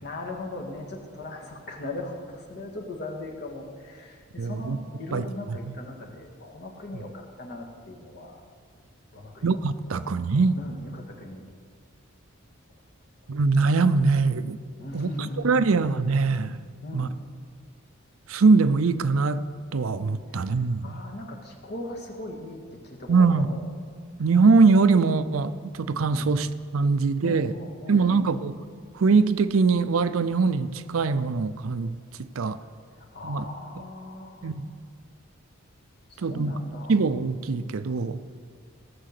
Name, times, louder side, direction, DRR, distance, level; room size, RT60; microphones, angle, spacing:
voice 1, 0.0-8.4 9.1-9.4 10.6-11.4 14.8-15.6 16.8-17.2 20.3-20.5 20.8-22.6 22.8-23.6 26.1-26.3 27.2-28.3 33.0-34.7 36.1-37.0, left 2 dB, 55° left, 1 dB, 1.8 m, -38 dB
voice 2, 4.4-4.8 5.1-5.8 9.4-10.6 13.3-14.6 14.9-16.6 16.9-17.1 18.3-19.4 19.7-21.0 23.1-23.5 24.2-27.5 27.9-28.6 28.9-32.6 33.2-33.4 34.4-34.7 36.2-36.5 36.9-38.2, right 4 dB, 85° right, 13 dB, 0.5 m, -22 dB
17.0 x 6.8 x 6.6 m, 2.1 s
head